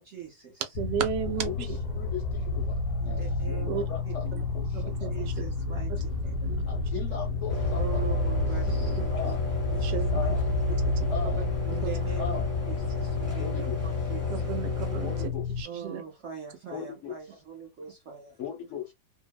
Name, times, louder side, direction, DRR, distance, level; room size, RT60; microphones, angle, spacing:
voice 1, 0.0-0.8 3.0-4.1 4.8-6.4 7.7-9.4 9.7-10.3 10.7-11.0 11.6-12.4 12.7-14.5 15.6-18.4, right 7 dB, 60° right, 0.8 m, -42 dB
sound 1, 0.8-15.6, left 3 dB, 85° left, 1.3 m, -30 dB
voice 2, 0.8-1.8 3.7-3.8 4.4-4.5 4.7-5.3 5.9-6.0 6.4-6.6 9.8-10.2 14.3-15.1 15.6-16.0, right 8 dB, 80° right, 1.2 m, -33 dB
sound 2, 1.1-13.3, left 2 dB, 25° right, 0.9 m, -40 dB
voice 3, 1.3-5.1 6.7-8.2 9.1-9.4 10.1-10.5 11.1-11.5 12.2-12.5 13.4-13.8 15.0-15.7 16.7-17.2 18.4-18.9, left 7 dB, 60° left, 0.8 m, -38 dB
sound 3, 7.5-15.3, left 3 dB, 15° left, 0.7 m, -34 dB
2.9 x 2.0 x 2.2 m
omnidirectional pair, 1.9 m